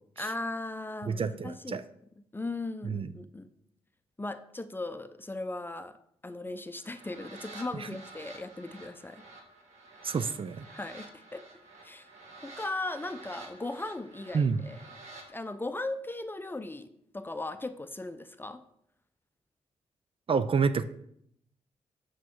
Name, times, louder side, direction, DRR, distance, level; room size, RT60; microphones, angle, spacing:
voice 1, 0.2-1.8 2.3-3.5 4.2-6.0 6.2-9.2 10.7-11.5 11.8-12.1 12.4-14.8 15.3-16.9 17.1-18.6, left 2 dB, 15° left, 10 dB, 0.6 m, -37 dB
voice 2, 1.1-1.8 2.8-3.1 7.8-7.9 10.0-10.6 14.3-14.6 20.3-20.8, right 5 dB, 50° right, 12 dB, 0.5 m, -28 dB
sound 1, 6.8-15.3, right 2 dB, 70° right, 1.8 m, -50 dB
6.3 x 6.0 x 4.6 m, 0.72 s
cardioid pair, 55°, 12 cm